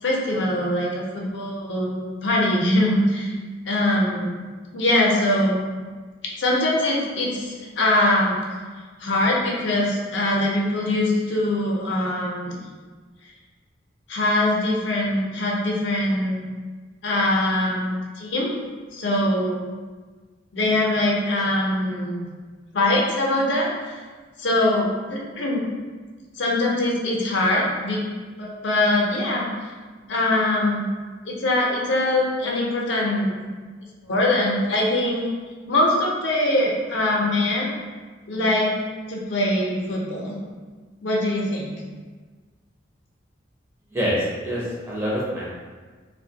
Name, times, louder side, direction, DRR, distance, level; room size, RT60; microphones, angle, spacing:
voice 1, 0.0-3.3 3.7-4.3 4.7-5.6 6.4-8.3 9.0-12.6 14.1-16.5 17.0-18.5 18.9-19.6 20.5-22.3 22.7-23.9 24.4-25.7 26.4-28.0 28.4-29.5 30.1-30.9 31.3-33.4 34.0-35.3 35.7-37.7 38.3-38.7 39.1-40.3 41.0-41.7, left 1 dB, 65° left, -3 dB, 0.5 m, -22 dB
voice 2, 43.9-45.5, equal, 10° right, -6 dB, 0.5 m, -26 dB
2.5 x 2.1 x 2.7 m, 1.4 s
head